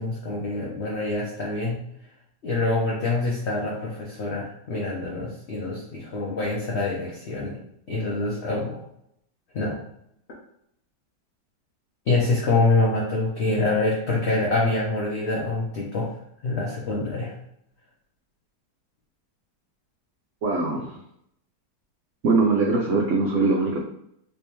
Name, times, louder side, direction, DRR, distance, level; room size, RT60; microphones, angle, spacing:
voice 1, 0.0-1.8 2.4-7.6 7.9-8.8 9.5-9.8 12.1-16.1 16.4-17.3, left 2 dB, 55° left, -4 dB, 0.7 m, -25 dB
voice 2, 20.4-21.0 22.2-23.9, right 3 dB, 70° right, -1 dB, 0.7 m, -22 dB
3.4 x 3.0 x 2.9 m, 0.74 s
omnidirectional pair, 1.9 m